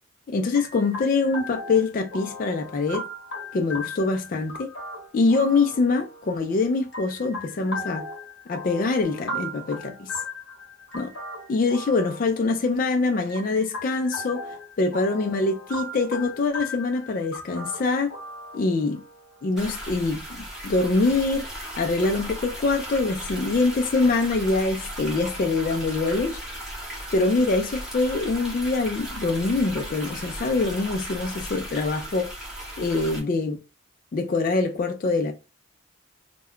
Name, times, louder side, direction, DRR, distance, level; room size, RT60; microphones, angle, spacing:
voice 1, 0.3-3.0 3.5-4.7 5.1-8.0 8.5-10.1 10.9-11.1 11.5-18.1 18.5-19.0 19.4-21.4 21.8-26.4 27.1-32.3 32.8-33.6 34.1-35.3, left 3 dB, 40° left, 0.3 m, -24 dB
sound 1, 0.5-19.8, left 1 dB, 60° left, 1.0 m, -38 dB
sound 2, 19.6-33.2, right 1 dB, ahead, 0.9 m, -36 dB
2.2 x 2.2 x 3.5 m
head